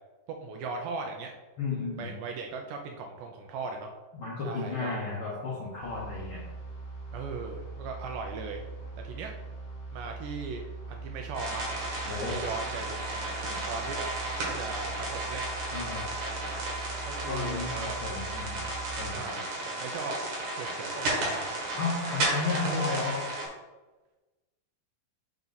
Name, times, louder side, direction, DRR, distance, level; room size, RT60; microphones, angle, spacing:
voice 1, 0.4-1.3 1.7-3.9 4.4-4.9 7.1-8.6 9.0-9.3 9.9-11.7 12.1-14.1 14.4-15.5 17.1-18.0 19.1-20.2 20.5-21.5, right 4 dB, 80° right, 2 dB, 2.0 m, -38 dB
voice 2, 1.6-2.1 4.2-6.4 12.0-12.4 13.5-13.6 15.7-16.1 17.3-19.3 21.7-23.3, left 4 dB, 90° left, -5 dB, 1.1 m, -33 dB
sound 1, 5.8-19.1, right 3 dB, 60° left, 2.1 m, -41 dB
sound 2, 11.3-23.5, right 2 dB, 60° right, 2.8 m, -34 dB
5.9 x 5.4 x 3.9 m, 1.2 s
omnidirectional pair, 4.2 m